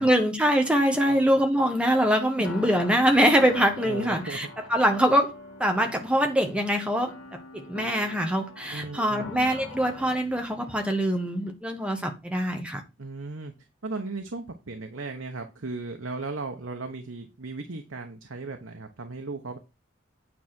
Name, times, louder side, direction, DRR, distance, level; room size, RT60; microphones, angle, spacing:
voice 1, 0.0-5.3 5.6-12.8, equal, 5° right, 1.4 m, -24 dB
voice 2, 0.9-1.4 3.8-4.4 8.7-9.3 13.0-13.5 13.8-19.6, right 3 dB, 90° right, 1.1 m, -36 dB
sound 1, 2.4-10.9, left 2 dB, 75° left, 2.0 m, -43 dB
9.3 x 3.5 x 6.1 m
head